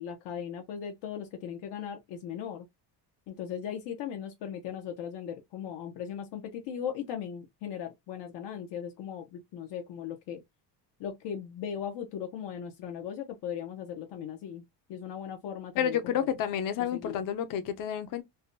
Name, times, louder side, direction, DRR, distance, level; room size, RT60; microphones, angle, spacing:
voice 1, 0.0-2.7 3.3-10.4 11.0-14.6 14.9-16.3 16.9-17.2, left 8 dB, 85° left, 0.8 m, -38 dB
voice 2, 15.8-18.2, left 9 dB, 55° left, 0.6 m, -30 dB
3.5 x 2.1 x 2.6 m
cardioid pair, 165°, 41 cm